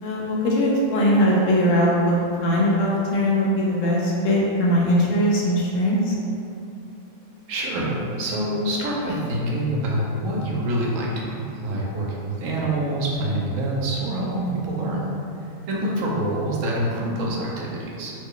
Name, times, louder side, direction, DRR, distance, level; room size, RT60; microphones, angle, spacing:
voice 1, 0.0-6.1, equal, 70° left, -4 dB, 1.0 m, -20 dB
voice 2, 7.5-15.1 15.7-18.1, right 1 dB, 75° right, -3 dB, 1.0 m, -26 dB
3.1 x 2.2 x 3.6 m, 2.7 s
omnidirectional pair, 1.4 m